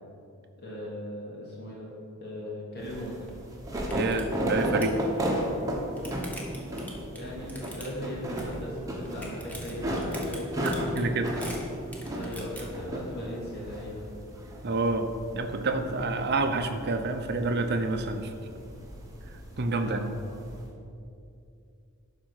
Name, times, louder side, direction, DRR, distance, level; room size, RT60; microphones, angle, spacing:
voice 1, 0.6-1.9 2.2-3.1 6.0-6.4 7.1-11.2 12.1-14.1 19.8-20.4, left 1 dB, 45° left, -5 dB, 2.2 m, -38 dB
sound 1, 2.8-20.7, equal, 15° right, 1.2 m, -35 dB
sound 2, 3.3-3.4 3.7-4.2 4.5-5.0 5.6-8.1 8.4-8.8 9.1-12.6, equal, 5° left, 1.1 m, -43 dB
voice 2, 3.9-5.0 10.6-11.4 14.6-15.1 15.3-18.3 19.6-20.2, right 3 dB, 50° right, 6 dB, 0.6 m, -28 dB
11.5 x 5.1 x 4.8 m, 2.6 s
head